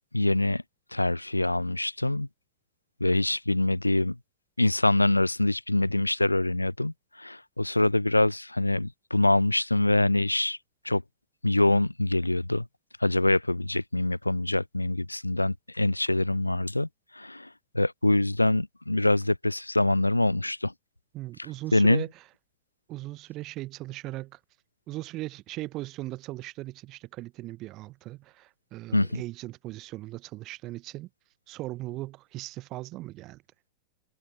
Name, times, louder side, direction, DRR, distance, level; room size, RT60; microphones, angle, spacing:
voice 1, 0.1-0.6 0.9-2.3 3.0-4.2 4.6-6.9 7.2-10.6 10.9-11.0 11.4-12.6 13.0-16.9 17.2-17.5 17.7-20.7 21.7-22.0 28.9-29.2, left 2 dB, 85° left, 0.3 m, -24 dB
voice 2, 21.1-22.1 22.9-24.4 24.9-31.1 31.5-33.4, right 18 dB, 35° right, 0.4 m, -38 dB
figure-of-eight pair, 90°, 0 cm